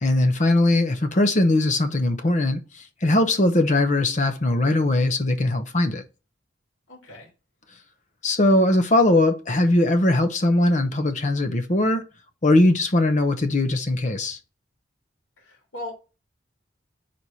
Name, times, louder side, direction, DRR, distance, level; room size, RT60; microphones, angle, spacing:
voice 1, 0.0-2.6 3.0-6.0 8.2-12.0 12.4-14.4, left 1 dB, 40° left, 0.8 m, -20 dB
voice 2, 6.9-7.3 15.4-15.9, left 1 dB, 90° left, 3.0 m, -38 dB
4.7 x 4.3 x 5.4 m
head